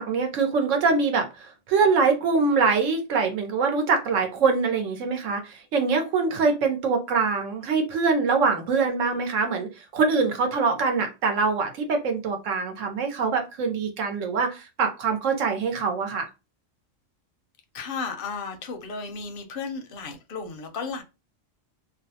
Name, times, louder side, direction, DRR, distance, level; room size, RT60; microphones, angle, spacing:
voice 1, 0.0-16.3, right 4 dB, 80° right, 1.0 m, -24 dB
voice 2, 17.7-21.0, left 5 dB, 60° left, 0.6 m, -34 dB
2.6 x 2.0 x 2.7 m
omnidirectional pair, 1.3 m